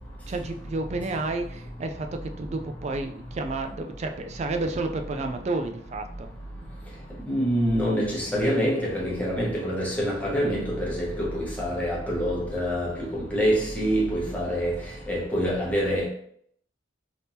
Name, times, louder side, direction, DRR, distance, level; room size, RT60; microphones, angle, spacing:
voice 1, 0.3-6.3, right 2 dB, 35° right, 0.3 m, -31 dB
voice 2, 7.3-14.8 15.1-16.1, equal, 10° left, 1.1 m, -26 dB
3.5 x 2.9 x 2.7 m
head